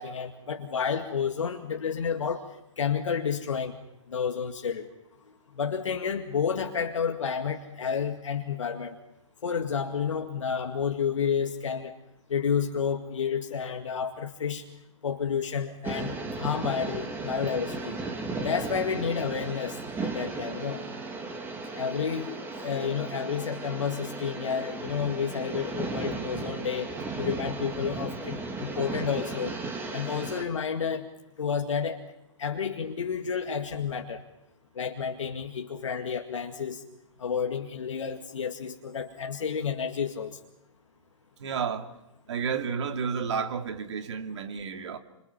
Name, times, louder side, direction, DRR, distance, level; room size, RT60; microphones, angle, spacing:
voice 1, 0.0-2.4 2.8-3.7 4.1-4.9 5.6-9.0 9.4-11.9 12.3-14.6 15.0-18.0 18.4-20.8 21.8-22.4 22.6-26.9 27.2-29.6 29.9-31.1 31.4-32.0 32.4-34.2 34.8-36.8 37.2-40.4, left 7 dB, 65° left, 2.1 m, -30 dB
sound 1, 15.8-30.4, right 3 dB, 10° right, 2.9 m, -35 dB
voice 2, 41.4-41.9 42.3-45.0, right 6 dB, 60° right, 2.6 m, -31 dB
28.0 x 26.5 x 5.7 m
figure-of-eight pair, 120°, 17 cm